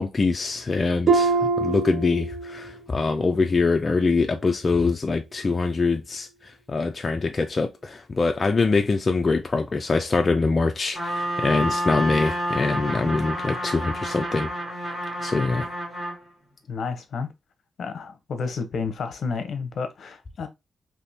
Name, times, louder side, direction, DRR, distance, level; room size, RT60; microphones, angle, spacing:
voice 1, 0.0-6.3 6.7-14.5 15.2-15.7, left 3 dB, 30° left, 0.4 m, -24 dB
Harp, 1.1-2.8 3.2-3.6 4.2-4.3, right 4 dB, 45° right, 0.7 m, -24 dB
Trumpet, 10.9-16.2, equal, 15° right, 1.9 m, -29 dB
voice 2, 16.7-17.3 17.8-20.5, left 5 dB, 60° left, 0.8 m, -31 dB
3.5 x 2.8 x 2.7 m
wide cardioid pair, 135°, 0 cm